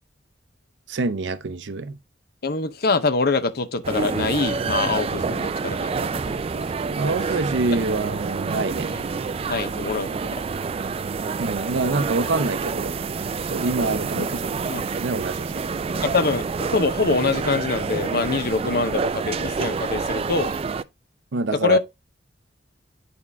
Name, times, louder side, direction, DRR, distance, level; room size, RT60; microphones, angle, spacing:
voice 1, 0.9-1.9 7.0-8.9 11.4-12.9 13.5-15.7 21.3-21.8, right 3 dB, 75° right, 0.6 m, -26 dB
voice 2, 2.4-6.6 8.9-9.0 9.5-10.4 14.2-14.3 14.7-14.8 16.0-20.5 21.6-21.8, left 4 dB, 55° left, 0.7 m, -24 dB
sound 1, 3.8-20.8, right 5 dB, 30° right, 0.3 m, -28 dB
8.4 x 4.3 x 3.5 m
head